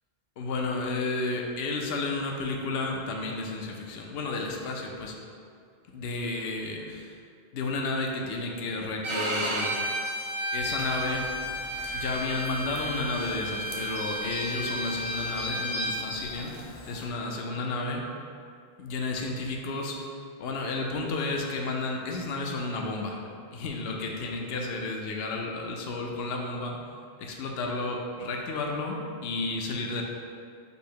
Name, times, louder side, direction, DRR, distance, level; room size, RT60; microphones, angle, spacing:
voice 1, 0.4-5.2 5.9-7.2 7.5-9.7 10.5-11.3 11.9-18.1 18.8-20.1 20.4-23.2 23.5-26.8 27.2-30.0, left 3 dB, 75° left, 1 dB, 0.8 m, -32 dB
Bowed string instrument, 9.0-16.0, right 1 dB, 45° right, 0.4 m, -32 dB
sound 1, 10.5-17.1, left 1 dB, 40° left, 0.6 m, -40 dB
5.4 x 2.0 x 4.5 m, 2.3 s
omnidirectional pair, 1.0 m